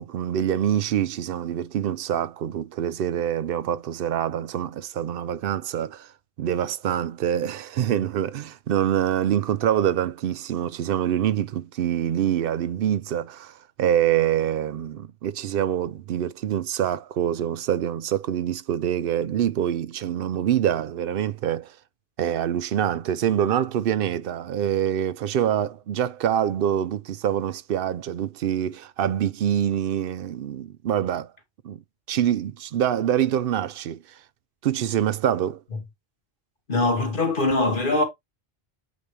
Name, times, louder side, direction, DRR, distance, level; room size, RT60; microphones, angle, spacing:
voice 1, 0.0-6.1 6.4-21.7 22.2-31.3 31.6-31.8 32.1-34.0 34.6-35.6, right 10 dB, 65° right, 0.7 m, -25 dB
voice 2, 36.7-38.0, left 2 dB, 50° left, 2.3 m, -22 dB
8.4 x 2.9 x 4.9 m
omnidirectional pair, 1.1 m